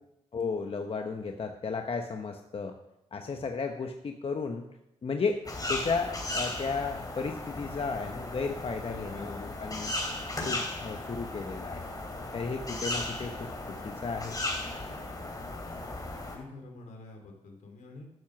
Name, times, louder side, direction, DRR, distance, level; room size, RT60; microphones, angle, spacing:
voice 1, 0.3-2.7 3.1-4.6 5.0-5.4 5.7-9.9 10.4-11.8 12.3-14.4, left 4 dB, 45° left, 4 dB, 1.1 m, -34 dB
sound 1, 5.4-16.4, left 2 dB, 30° left, 3.4 m, -36 dB
voice 2, 8.8-9.5 16.1-18.1, left 3 dB, 80° left, 2 dB, 2.9 m, -47 dB
12.5 x 7.4 x 6.0 m, 0.86 s
supercardioid pair, 55°, 13 cm